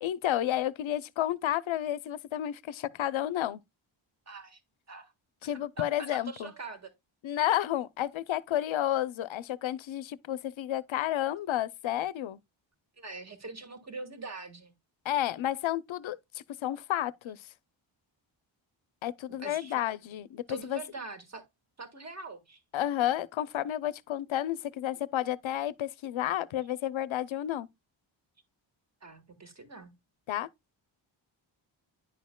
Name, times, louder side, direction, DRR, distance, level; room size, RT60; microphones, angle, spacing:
voice 1, 0.0-3.6 5.4-6.5 7.2-12.4 15.0-17.4 19.0-20.8 22.7-27.7 30.3-30.5, left 12 dB, 80° left, 0.7 m, -31 dB
voice 2, 4.3-4.6 4.9-5.1 5.5-6.9 13.0-14.7 19.4-19.8 20.5-21.4 21.8-22.6 29.0-29.9, right 3 dB, 35° right, 1.7 m, -43 dB
10.0 x 6.4 x 2.2 m
wide cardioid pair, 125°, 46 cm